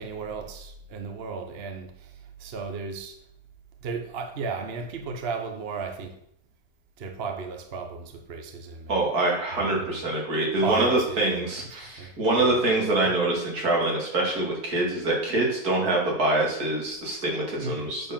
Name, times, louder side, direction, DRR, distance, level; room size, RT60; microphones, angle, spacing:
voice 1, 0.0-3.2 3.8-6.2 7.0-9.0 9.5-10.0 10.6-12.1 12.4-12.6 17.6-17.9, right 5 dB, 45° right, 1.0 m, -35 dB
voice 2, 8.9-18.1, right 2 dB, 75° right, 3.0 m, -25 dB
7.9 x 4.7 x 7.2 m
omnidirectional pair, 1.6 m